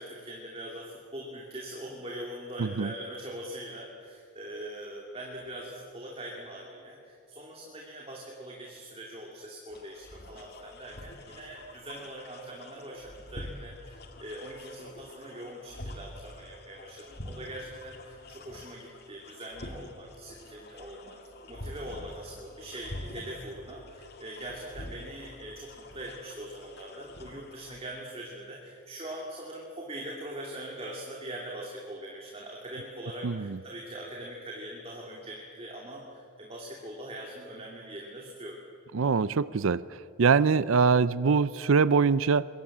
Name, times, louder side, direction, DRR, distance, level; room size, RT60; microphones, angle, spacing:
voice 1, 0.0-21.2 21.5-38.6, right 1 dB, 25° right, -1 dB, 2.7 m, -42 dB
sound 1, 9.7-27.8, left 1 dB, 45° left, 2.3 m, -46 dB
voice 2, 33.2-33.6 38.9-39.8 40.2-42.5, right 5 dB, 70° right, 17 dB, 0.5 m, -23 dB
27.0 x 23.0 x 7.4 m, 2.4 s
head